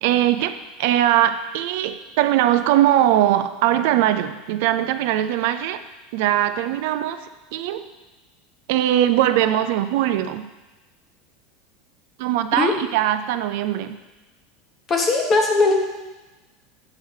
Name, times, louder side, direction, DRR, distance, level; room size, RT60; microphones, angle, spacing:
voice 1, 0.0-5.8 6.1-7.9 8.7-10.5 12.2-13.9, right 12 dB, 60° right, 10 dB, 0.4 m, -21 dB
voice 2, 14.9-15.7, left 3 dB, 20° left, 2 dB, 1.0 m, -18 dB
8.6 x 3.8 x 6.2 m, 1.1 s
supercardioid pair, 170°, 0 cm